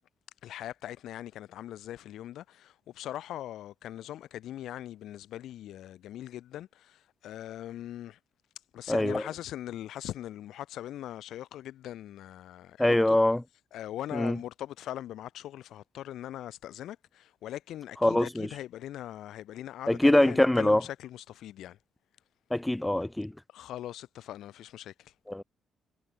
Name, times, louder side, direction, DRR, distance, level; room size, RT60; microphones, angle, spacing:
voice 1, 0.4-8.2 8.7-13.2 13.7-21.8 23.5-25.1, left 12 dB, 80° left, 4.4 m, -41 dB
voice 2, 8.9-9.2 12.8-13.4 14.1-14.4 18.0-18.5 19.9-20.8 22.5-23.3 25.3-25.4, left 1 dB, 10° left, 0.3 m, -23 dB
cardioid pair, 90°, 0 cm